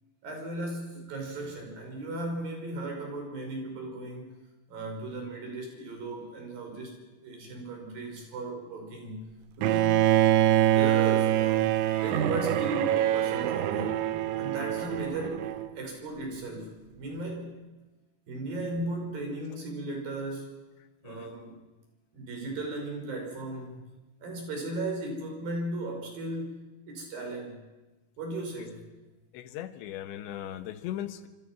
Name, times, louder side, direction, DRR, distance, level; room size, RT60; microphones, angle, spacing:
voice 1, 0.2-4.4 4.7-10.1 10.4-14.0 14.4-15.5 15.7-17.5 18.3-20.6 21.0-21.6 22.1-23.9 24.2-27.7 28.2-28.8, right 2 dB, 50° right, 2 dB, 6.8 m, -36 dB
Bowed string instrument, 9.6-15.7, right 13 dB, 90° right, 3.5 m, -25 dB
voice 2, 29.3-31.3, left 12 dB, 85° left, 10 dB, 3.6 m, -38 dB
26.5 x 26.0 x 6.0 m, 1.1 s
omnidirectional pair, 5.2 m